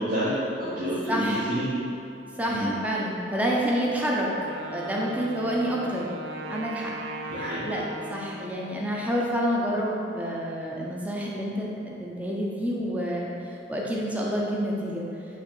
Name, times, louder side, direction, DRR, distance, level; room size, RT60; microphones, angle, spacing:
voice 1, 0.0-1.7 2.5-2.7 7.3-7.6, right 1 dB, 55° right, -11 dB, 0.9 m, -28 dB
voice 2, 1.1-1.5 2.4-4.3 4.7-6.1 6.5-6.9 7.6-13.3 13.7-15.0, equal, 10° right, -3 dB, 0.4 m, -28 dB
Wind instrument woodwind instrument, 4.2-9.1, right 1 dB, 70° right, 0.4 m, -38 dB
4.1 x 2.9 x 4.4 m, 2.8 s
head